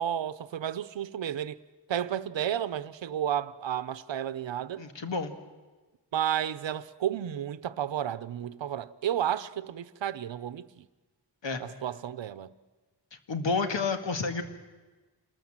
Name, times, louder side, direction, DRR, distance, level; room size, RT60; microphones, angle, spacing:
voice 1, 0.0-1.6 1.9-4.8 6.1-10.8 11.6-12.5, right 10 dB, 90° right, 0.8 m, -32 dB
voice 2, 4.8-5.3 11.4-11.6 13.3-14.4, left 4 dB, 90° left, 2.0 m, -30 dB
27.0 x 20.5 x 7.4 m
wide cardioid pair, 165°, 43 cm